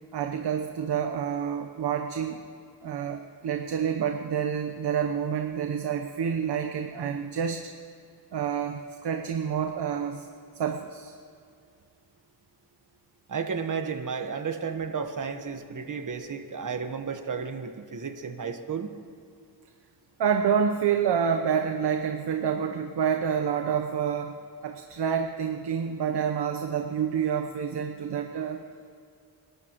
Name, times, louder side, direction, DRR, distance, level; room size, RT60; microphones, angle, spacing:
voice 1, 0.1-2.4 2.8-7.6 8.3-10.3 10.5-11.1 20.2-24.4 24.6-28.6, right 7 dB, 80° right, 5 dB, 1.0 m, -28 dB
voice 2, 13.3-18.9, right 6 dB, 50° right, 7 dB, 1.4 m, -33 dB
30.0 x 12.5 x 3.1 m, 2.5 s
cardioid pair, 80°, 41 cm